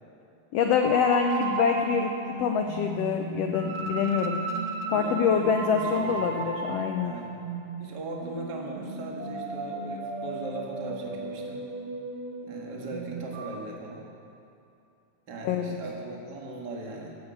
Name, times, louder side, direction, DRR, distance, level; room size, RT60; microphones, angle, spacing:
voice 1, 0.5-4.4 4.9-7.2 15.4-15.8, left 6 dB, 80° left, 4 dB, 1.4 m, -25 dB
sound 1, 0.8-13.5, right 3 dB, 65° right, 1.6 m, -35 dB
voice 2, 4.9-6.4 7.0-7.4 7.8-11.7 12.5-14.1 15.3-17.2, right 2 dB, 40° right, -1 dB, 1.9 m, -39 dB
14.5 x 8.1 x 8.5 m, 2.7 s
omnidirectional pair, 3.6 m